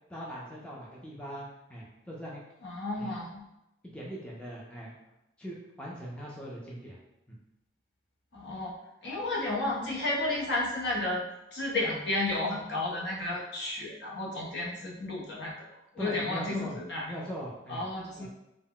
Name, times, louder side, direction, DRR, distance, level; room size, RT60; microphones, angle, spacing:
voice 1, 0.1-2.4 3.0-3.2 3.9-4.9 5.4-7.0 7.3-7.4 16.0-16.8 17.1-17.8 18.2-18.3, equal, 5° left, -5 dB, 0.3 m, -40 dB
voice 2, 2.6-3.4 8.3-8.7 9.0-11.2 11.5-15.5 15.9-17.0 17.7-18.3, left 2 dB, 60° left, -4 dB, 0.7 m, -32 dB
2.1 x 2.0 x 3.7 m, 0.89 s
head